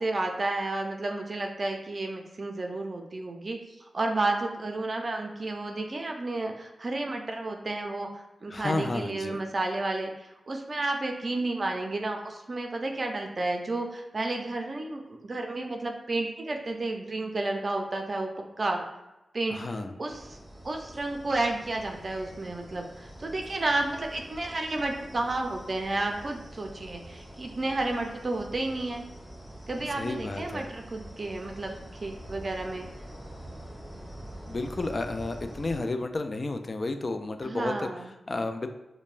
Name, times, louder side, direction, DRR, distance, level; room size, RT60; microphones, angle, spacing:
voice 1, 0.0-3.6 3.9-18.8 19.3-19.6 20.0-20.4 20.6-29.0 29.7-32.9 37.4-38.1, right 2 dB, 50° right, 3 dB, 0.4 m, -31 dB
voice 2, 8.5-9.4 19.5-19.9 30.0-30.7 34.5-37.9 38.3-38.7, left 2 dB, 45° left, 7 dB, 0.3 m, -32 dB
sound 1, 20.0-35.8, right 1 dB, ahead, 1.5 m, -45 dB
5.2 x 2.1 x 2.4 m, 0.96 s
cardioid pair, 65°, 0 cm